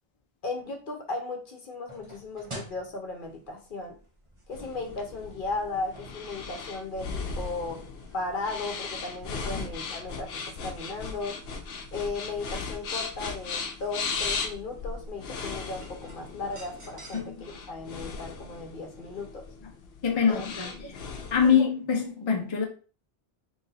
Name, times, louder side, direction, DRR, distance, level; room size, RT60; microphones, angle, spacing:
voice 1, 0.4-4.0 4.5-7.8 8.1-11.4 11.9-19.4 20.3-20.9 21.4-21.6, left 3 dB, 60° left, 1.0 m, -36 dB
sound 1, 1.9-17.5, right 1 dB, 30° right, 1.0 m, -51 dB
sound 2, 4.5-21.5, left 4 dB, 80° left, 0.9 m, -37 dB
voice 2, 20.0-21.0 21.3-22.6, left 7 dB, 35° left, 0.6 m, -24 dB
3.0 x 2.7 x 3.9 m
omnidirectional pair, 1.0 m